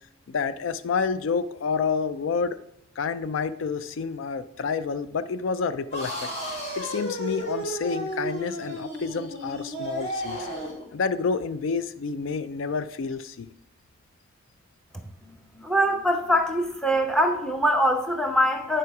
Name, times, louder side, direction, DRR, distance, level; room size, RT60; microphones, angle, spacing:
voice 1, 0.3-2.6 3.0-6.3 6.8-10.5 10.9-13.5, left 5 dB, 70° left, 13 dB, 0.4 m, -29 dB
sound 1, 5.9-10.8, right 1 dB, 35° left, 2.0 m, -33 dB
voice 2, 15.6-18.8, equal, 5° left, 4 dB, 0.8 m, -23 dB
9.5 x 5.0 x 4.7 m, 0.76 s
head